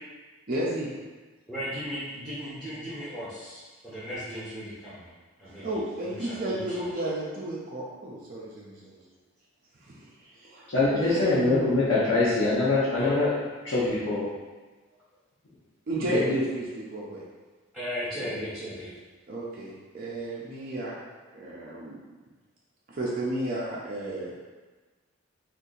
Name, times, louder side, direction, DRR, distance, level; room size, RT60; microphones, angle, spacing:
voice 1, 0.5-0.9 5.6-9.0 9.8-10.7 11.0-11.9 15.9-17.2 19.3-21.0 21.3-22.0 22.9-24.3, right 1 dB, 40° right, -6 dB, 0.5 m, -32 dB
voice 2, 1.5-5.1 5.4-5.8 6.0-6.8 13.0-13.2 17.7-18.9, equal, 5° right, -12 dB, 0.7 m, -36 dB
voice 3, 10.7-13.3 13.6-14.2 16.1-16.2, left 3 dB, 65° left, -10 dB, 0.7 m, -23 dB
2.7 x 2.5 x 3.8 m, 1.3 s
head